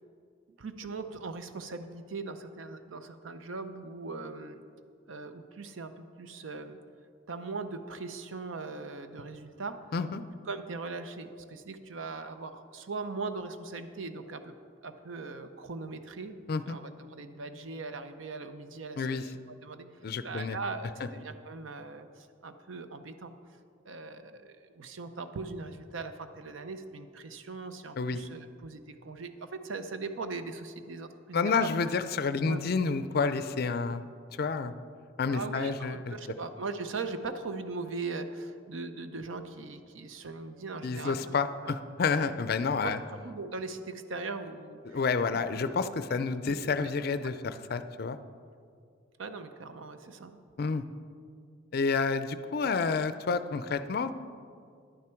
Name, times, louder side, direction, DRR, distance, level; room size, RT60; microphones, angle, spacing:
voice 1, 0.6-4.6 5.1-6.8 7.3-9.8 10.5-14.5 14.8-16.4 16.7-19.0 19.6-19.8 20.2-22.1 22.4-23.3 23.9-31.7 32.4-32.6 35.3-41.2 41.6-41.7 42.8-42.9 43.2-44.8 46.5-46.6 49.2-50.4, right 3 dB, 85° right, 9 dB, 0.7 m, -39 dB
voice 2, 9.9-10.2 16.5-16.8 19.0-19.3 20.0-20.6 21.0-21.1 28.0-28.2 31.3-34.0 34.4-34.8 35.2-36.2 40.8-43.0 44.9-48.2 50.6-50.8 51.7-54.1, left 4 dB, 50° left, 12 dB, 0.4 m, -29 dB
11.0 x 9.6 x 4.5 m, 2.3 s
head